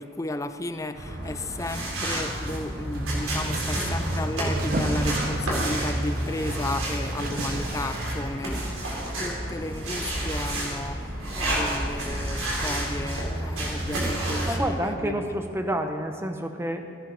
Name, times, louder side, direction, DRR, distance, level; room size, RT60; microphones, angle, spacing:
voice 1, 0.0-8.9 9.2-15.4, left 2 dB, 15° left, 10 dB, 0.4 m, -34 dB
sound 1, 0.9-14.6, right 1 dB, 85° right, 4.2 m, -29 dB
sound 2, 2.9-8.4, right 2 dB, 45° right, 0.9 m, -34 dB
voice 2, 14.5-16.9, right 1 dB, 10° right, 6 dB, 0.8 m, -29 dB
15.0 x 10.5 x 5.2 m, 2.3 s
head